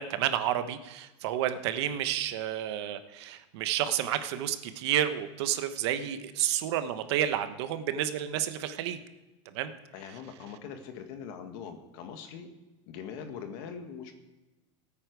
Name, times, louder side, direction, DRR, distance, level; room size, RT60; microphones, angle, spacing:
voice 1, 0.0-9.0 9.5-9.7, right 11 dB, 65° right, 10 dB, 1.1 m, -30 dB
voice 2, 9.9-12.5 12.9-14.1, left 7 dB, 55° left, 6 dB, 1.7 m, -42 dB
19.5 x 8.8 x 4.7 m, 1.1 s
supercardioid pair, 165°, 15 cm